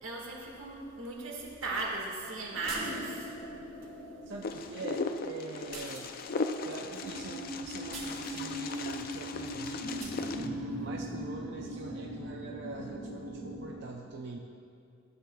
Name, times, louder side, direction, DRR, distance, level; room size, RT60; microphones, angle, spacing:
voice 1, 0.0-3.3 3.8-3.9, right 3 dB, 90° right, -2 dB, 1.7 m, -37 dB
sound 1, 2.5-13.8, equal, 85° left, 1.5 m, -41 dB
sound 2, 2.7-3.4 5.7-6.5 7.9-8.5 10.0-10.3, right 3 dB, 30° right, 1.6 m, -45 dB
voice 2, 4.3-6.1 6.6-10.0 10.4-14.4, right 3 dB, 55° right, 1 dB, 0.4 m, -43 dB
Wind, 4.4-10.5, left 4 dB, 45° left, 0.4 m, -38 dB
13.5 x 8.1 x 2.3 m, 2.5 s
head